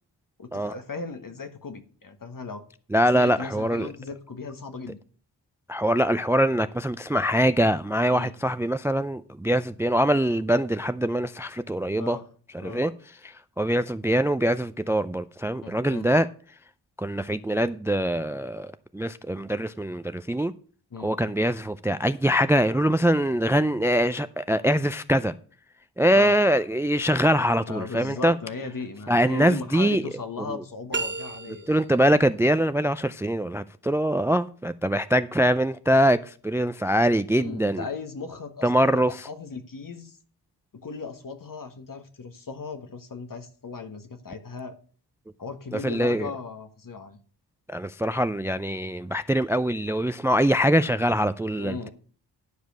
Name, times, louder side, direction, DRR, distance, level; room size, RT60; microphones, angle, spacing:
voice 1, 0.4-2.6 3.1-5.0 8.1-8.3 12.0-12.3 12.6-12.8 15.6-16.0 20.9-21.1 26.1-26.4 27.7-31.7 37.3-40.2 40.7-44.7 45.4-47.2 51.6-51.9, left 4 dB, 50° left, 1.6 m, -37 dB
voice 2, 2.9-3.9 5.7-12.2 12.5-12.9 13.2-16.3 17.0-20.5 21.0-25.3 26.0-28.3 29.1-30.0 31.7-37.8 38.6-39.3 45.8-46.3 47.7-51.9, equal, 5° right, 0.4 m, -23 dB
sound 1, 30.9-32.0, right 4 dB, 25° right, 0.8 m, -32 dB
11.5 x 5.2 x 6.1 m
cardioid pair, 60°, 42 cm